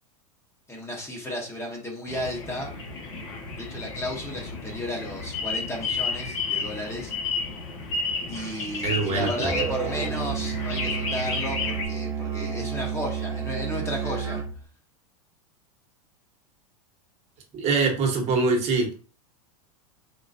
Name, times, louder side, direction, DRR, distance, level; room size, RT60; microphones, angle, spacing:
voice 1, 0.7-2.7 3.5-7.1 8.3-14.4, left 1 dB, 15° left, 0 dB, 1.1 m, -34 dB
sound 1, 2.1-11.9, left 4 dB, 60° left, 1.1 m, -32 dB
voice 2, 8.8-9.5 17.5-18.9, right 4 dB, 35° right, 2 dB, 1.2 m, -24 dB
Musical instrument, 9.4-14.6, right 7 dB, 20° right, 0.9 m, -30 dB
3.8 x 3.0 x 2.6 m, 0.39 s
hypercardioid pair, 110°, 19 cm